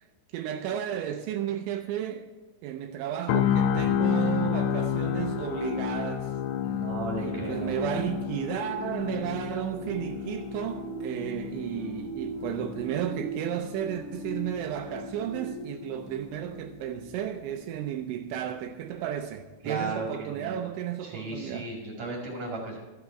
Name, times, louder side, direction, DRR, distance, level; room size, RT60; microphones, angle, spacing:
voice 1, 0.3-2.3 2.6-6.3 7.1-21.7, right 10 dB, 80° right, 2.8 m, -33 dB
sound 1, 3.3-17.3 17.6-17.9, left 8 dB, 80° left, 3.3 m, -31 dB
voice 2, 6.6-7.7 19.6-20.6 21.0-22.8, right 3 dB, 45° right, 2.5 m, -35 dB
sound 2, 7.3-17.1 17.6-17.8, right 4 dB, 25° left, 2.9 m, -42 dB
14.0 x 9.6 x 4.4 m
omnidirectional pair, 5.9 m